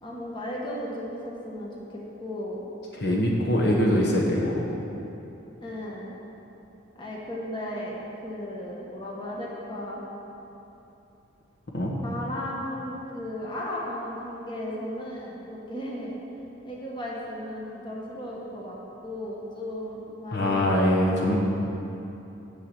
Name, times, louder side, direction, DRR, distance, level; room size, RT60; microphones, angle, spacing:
voice 1, 0.0-2.6 5.6-6.1 7.0-8.0 8.2-10.0 12.0-16.2 16.6-18.8 19.0-20.9, left 1 dB, 25° left, -4 dB, 1.4 m, -35 dB
voice 2, 2.9-4.6 11.7-11.9 20.3-21.4, left 1 dB, 55° left, -3 dB, 1.2 m, -23 dB
7.4 x 7.0 x 7.7 m, 3.0 s
head